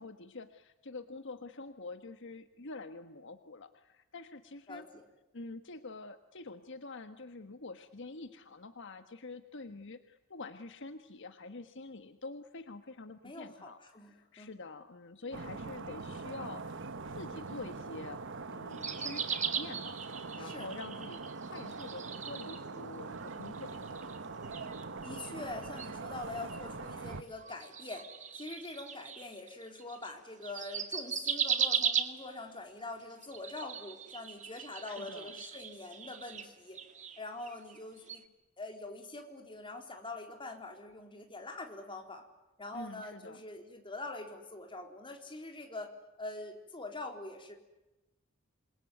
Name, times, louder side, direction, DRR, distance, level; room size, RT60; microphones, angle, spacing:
voice 1, 0.0-4.9 5.3-18.2 18.5-24.7 34.9-35.3 42.7-43.4, left 3 dB, 60° left, 8 dB, 1.5 m, -47 dB
voice 2, 4.7-5.0 13.2-14.5 20.4-20.7 25.0-28.1 28.3-36.8 37.2-38.2 38.6-42.2 42.6-45.9 46.2-47.5, left 2 dB, 25° left, 3 dB, 4.1 m, -44 dB
sound 1, 15.3-27.2, right 4 dB, 60° right, 1.3 m, -43 dB
sound 2, 18.7-22.9 23.2-30.1 30.4-32.5 33.1-37.8 38.1-38.2, right 7 dB, 35° right, 2.1 m, -38 dB
27.5 x 22.5 x 9.5 m, 1.0 s
head